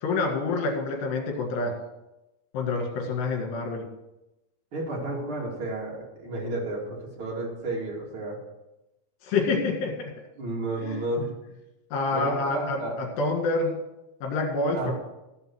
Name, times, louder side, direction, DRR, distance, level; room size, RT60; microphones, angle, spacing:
voice 1, 0.0-1.7 2.5-3.8 9.2-10.1 10.8-11.0 11.9-13.7 14.2-14.9, left 3 dB, 65° left, 0 dB, 3.9 m, -27 dB
voice 2, 4.7-8.4 10.4-11.3 12.1-13.0 14.7-14.9, right 2 dB, 40° right, -3 dB, 2.2 m, -32 dB
14.0 x 5.6 x 6.1 m, 0.97 s
omnidirectional pair, 5.7 m